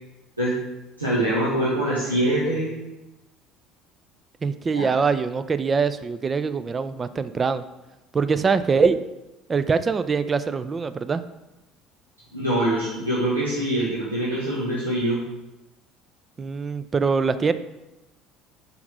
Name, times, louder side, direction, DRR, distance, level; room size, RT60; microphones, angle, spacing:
voice 1, 1.0-2.8 4.7-4.9 12.3-15.2, right 1 dB, 85° right, -9 dB, 1.4 m, -24 dB
voice 2, 4.4-7.6 8.1-9.0 9.5-11.2 16.4-17.5, right 5 dB, 25° right, 12 dB, 0.5 m, -23 dB
5.9 x 5.2 x 6.1 m, 1.0 s
figure-of-eight pair, 60°, 0 cm